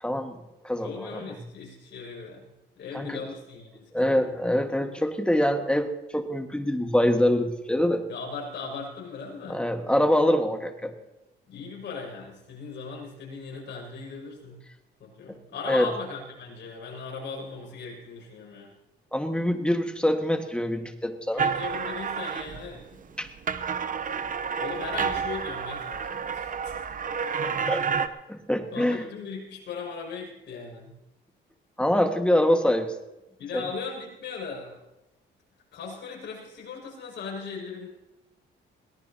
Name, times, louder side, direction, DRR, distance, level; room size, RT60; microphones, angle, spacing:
voice 1, 0.0-1.2 2.9-3.2 3.9-8.1 9.5-10.9 15.3-15.4 15.7-15.9 19.1-21.4 23.2-23.3 27.4-29.0 31.8-32.9 33.5-33.6, left 1 dB, 5° left, 5 dB, 1.7 m, -25 dB
voice 2, 0.8-4.2 8.1-9.6 11.5-14.6 15.0-18.8 21.3-23.2 24.1-27.1 28.7-30.9 33.4-34.8 35.7-37.9, left 5 dB, 65° left, -2 dB, 6.2 m, -38 dB
sound 1, 21.4-22.8 23.2-28.1, right 6 dB, 45° right, 0.9 m, -30 dB
21.5 x 18.0 x 2.9 m, 0.96 s
cardioid pair, 90°, 20 cm